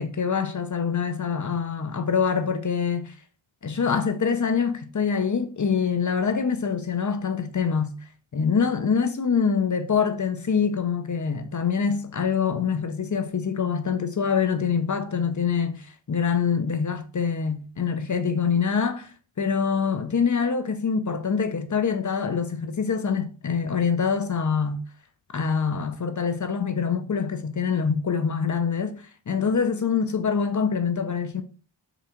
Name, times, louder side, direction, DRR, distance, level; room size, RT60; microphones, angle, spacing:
voice 1, 0.0-3.1 3.6-7.9 8.3-24.8 25.3-31.4, left 6 dB, 40° left, 0.6 m, -25 dB
3.8 x 2.4 x 4.3 m
cardioid pair, 50°, 47 cm